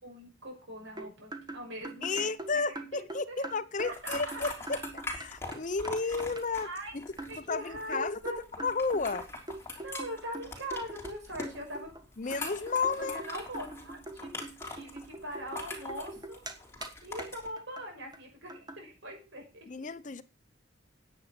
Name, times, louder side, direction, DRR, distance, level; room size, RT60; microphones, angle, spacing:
voice 1, 0.0-3.0 3.3-3.5 3.8-4.2 6.0-6.2 6.6-7.0 7.3-8.4 9.8-11.9 13.0-14.4 14.7-16.4 16.7-19.9, equal, 80° right, 6.2 m, -42 dB
sound 1, 1.0-5.6 5.8-5.9 6.2-6.4 7.2-7.4 7.9-11.2 11.4-12.0 12.3-16.6 16.8-16.9 17.2-17.3 17.6-17.8 18.1-18.2 18.5-18.8, right 2 dB, 20° right, 1.5 m, -43 dB
voice 2, 2.0-7.1 7.4-9.3 12.2-13.2 19.7-20.2, left 4 dB, 40° left, 0.7 m, -33 dB
sound 2, 3.8-17.5, left 2 dB, 15° left, 3.4 m, -43 dB
10.0 x 8.6 x 5.9 m
head